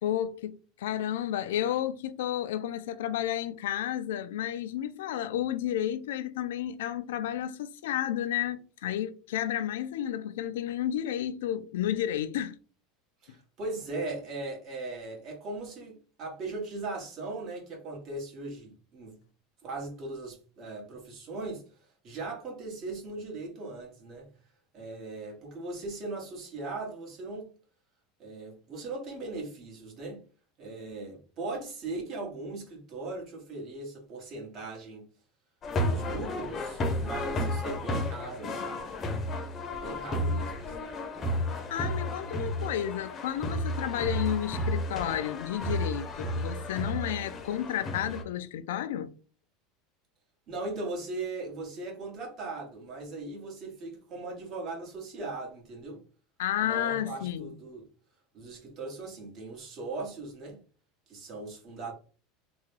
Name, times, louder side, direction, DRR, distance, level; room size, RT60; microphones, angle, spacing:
voice 1, 0.0-12.5 41.7-49.1 56.4-57.6, left 11 dB, 90° left, 0.4 m, -32 dB
voice 2, 13.2-19.2 19.6-21.7 22.0-24.3 24.7-27.5 28.2-30.3 30.6-35.1 35.8-38.9 39.8-40.9 50.5-56.0 56.6-57.8 58.3-60.6 61.1-61.9, right 3 dB, 45° right, 1.7 m, -39 dB
sound 1, 35.6-48.2, left 1 dB, 30° left, 0.7 m, -32 dB
3.5 x 2.2 x 3.2 m
supercardioid pair, 120°, 0 cm